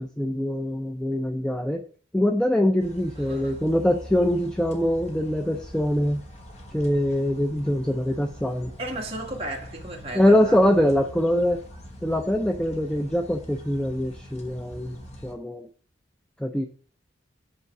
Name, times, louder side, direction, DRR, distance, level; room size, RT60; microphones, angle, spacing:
voice 1, 0.0-1.8 2.1-6.2 6.7-8.7 10.2-11.6 12.0-15.7 16.4-16.7, left 1 dB, 5° left, 0.5 m, -23 dB
sound 1, 2.8-15.3, equal, 35° left, 1.3 m, -43 dB
voice 2, 3.2-3.6 8.8-10.8, right 1 dB, 30° right, 1.5 m, -35 dB
8.2 x 3.6 x 5.8 m
head